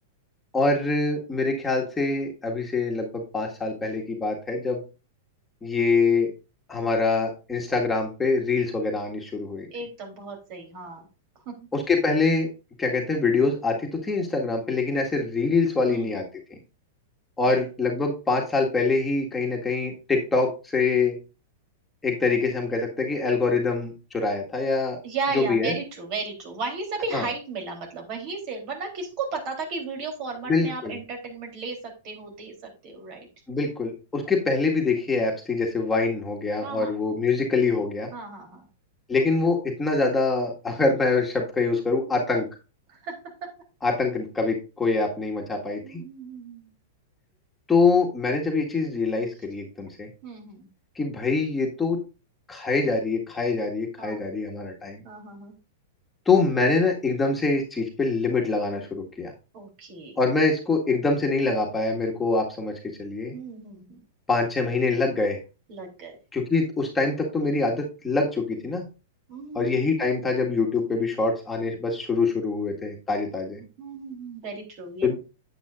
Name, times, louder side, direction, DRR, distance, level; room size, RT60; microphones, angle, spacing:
voice 1, 0.5-4.8 5.6-6.3 6.7-9.7 11.7-12.5 12.8-16.3 17.4-21.2 22.0-25.0 25.3-25.8 27.1-27.3 30.5-31.0 33.5-38.1 39.1-42.5 43.8-46.0 47.7-50.1 51.0-52.0 52.5-55.0 56.3-59.3 60.2-62.7 63.0-63.4 64.3-65.4 66.3-68.8 69.5-73.6 75.0-75.2, left 3 dB, 15° left, 0 dB, 1.8 m, -24 dB
voice 2, 9.7-11.1 11.5-11.7 15.9-16.1 17.4-17.7 25.0-33.3 36.6-36.9 38.1-38.7 42.0-42.2 42.9-43.1 43.4-43.5 45.8-46.7 50.2-50.7 54.0-54.3 55.0-55.6 59.5-60.2 63.3-64.0 65.7-66.2 69.3-69.9 73.8-75.1, right 4 dB, 45° right, 2 dB, 3.5 m, -35 dB
9.2 x 8.3 x 2.5 m, 0.31 s
hypercardioid pair, 105°, 0 cm